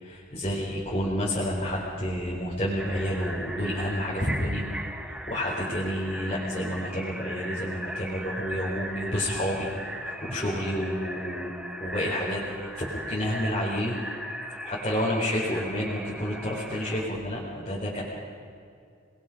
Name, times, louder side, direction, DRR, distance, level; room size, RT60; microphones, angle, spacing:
voice 1, 0.3-4.6 5.3-9.7 10.0-11.5 11.8-14.0 14.7-18.0, equal, 30° left, -6 dB, 4.3 m, -29 dB
sound 1, 2.8-17.1, equal, 5° right, 1.1 m, -38 dB
28.5 x 21.5 x 5.1 m, 2.4 s
head